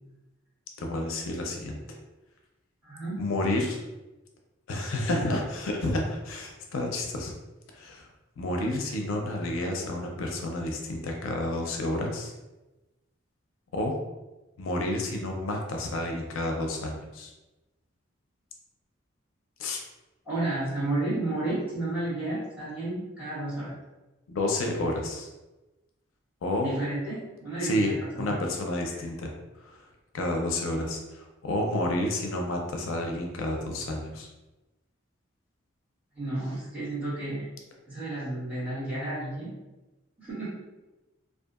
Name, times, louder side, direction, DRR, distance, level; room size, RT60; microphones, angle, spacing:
voice 1, 0.8-1.8 3.2-3.8 4.7-7.3 7.7-8.1 8.4-12.3 13.7-14.0 14.6-17.3 19.6-19.8 24.3-25.3 26.4-26.8 27.6-27.9 28.2-29.3 29.6-29.8 30.1-34.3, left 1 dB, 85° left, 2 dB, 0.4 m, -30 dB
voice 2, 2.8-3.2 5.1-5.2 20.2-23.7 26.6-28.4 36.2-37.4 37.9-39.5 40.2-40.5, right 2 dB, 10° right, -12 dB, 1.2 m, -32 dB
2.7 x 2.3 x 2.3 m, 1.1 s
head